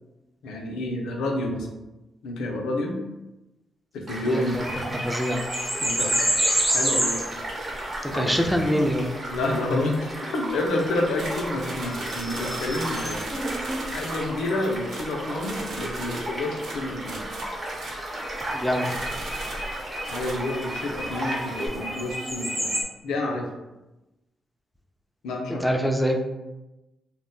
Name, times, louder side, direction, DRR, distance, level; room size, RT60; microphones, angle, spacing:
voice 1, 0.4-1.7 2.2-3.0 3.9-4.6 5.8-6.2 6.7-7.2 8.1-8.4 9.3-13.3 13.9-17.2 20.1-22.7 23.0-23.5 25.2-25.7, left 2 dB, 85° left, 2 dB, 0.4 m, -29 dB
Child speech kid speaking / Stream / Car passing by, 4.1-21.7, right 1 dB, 50° right, 0.9 m, -35 dB
voice 2, 4.3-4.6 5.0-5.4 8.0-9.1 18.5-18.9 25.5-26.2, equal, 5° left, 2 dB, 0.5 m, -24 dB
sound 1, 4.5-13.8 18.1-22.8, equal, 15° right, 0.8 m, -30 dB
sound 2, 11.2-14.4 14.8-18.5 18.8-20.3, right 2 dB, 70° right, 0.5 m, -37 dB
2.1 x 2.0 x 3.7 m, 1.0 s
supercardioid pair, 55°, 0 cm